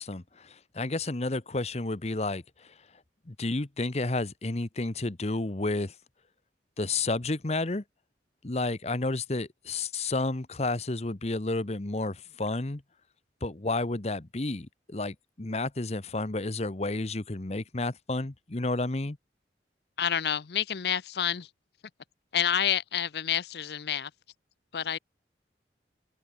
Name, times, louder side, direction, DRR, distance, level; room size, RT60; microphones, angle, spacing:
voice 1, 0.0-2.7 3.3-5.9 6.8-7.8 8.4-12.8 13.4-19.2, left 2 dB, 35° left, 1.0 m, -31 dB
voice 2, 20.0-21.5 22.3-24.1 24.7-25.0, left 9 dB, 65° left, 0.6 m, -28 dB
open air
head